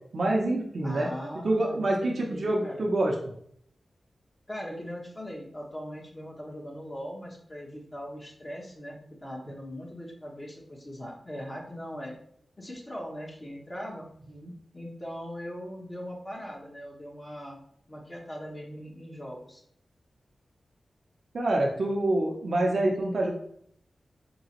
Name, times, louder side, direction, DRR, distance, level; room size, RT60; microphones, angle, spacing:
voice 1, 0.1-1.1 1.4-3.1 14.4-14.5 21.3-23.3, right 1 dB, 70° right, -1 dB, 0.6 m, -26 dB
voice 2, 0.8-2.9 4.5-12.1 12.6-14.1 14.7-17.6 17.9-19.6, equal, 40° left, -3 dB, 1.0 m, -40 dB
3.8 x 2.9 x 2.9 m, 0.66 s
cardioid pair, 40°, 0 cm